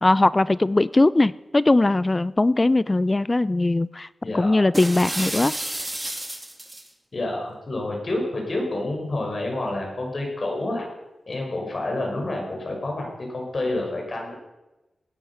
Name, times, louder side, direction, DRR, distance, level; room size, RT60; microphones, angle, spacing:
voice 1, 0.0-4.1 4.3-5.5, left 2 dB, 25° left, 18 dB, 0.4 m, -20 dB
voice 2, 4.2-4.6 7.1-10.9 11.3-14.3, left 2 dB, 50° left, 0 dB, 5.4 m, -28 dB
sound 1, 4.7-6.9, right 1 dB, 15° right, 2.4 m, -31 dB
18.5 x 10.5 x 5.6 m, 1.0 s
cardioid pair, 70°, 0 cm